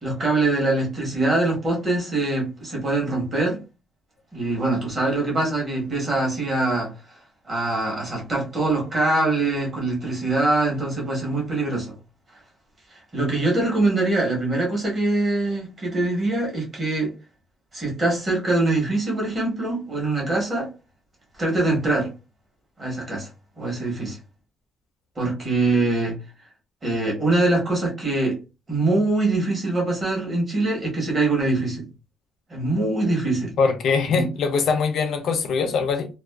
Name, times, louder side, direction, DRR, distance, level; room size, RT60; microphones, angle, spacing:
voice 1, 0.0-3.6 4.3-6.9 7.5-11.9 12.9-17.1 17.7-20.7 21.4-22.1 22.8-23.3 23.6-24.2 25.2-26.2 26.8-28.4 28.7-31.9 32.5-33.5 34.1-34.3, right 2 dB, 20° right, 1.0 m, -23 dB
voice 2, 33.6-36.1, left 5 dB, 55° left, 0.5 m, -22 dB
2.3 x 2.3 x 2.2 m
cardioid pair, 175°, 0 cm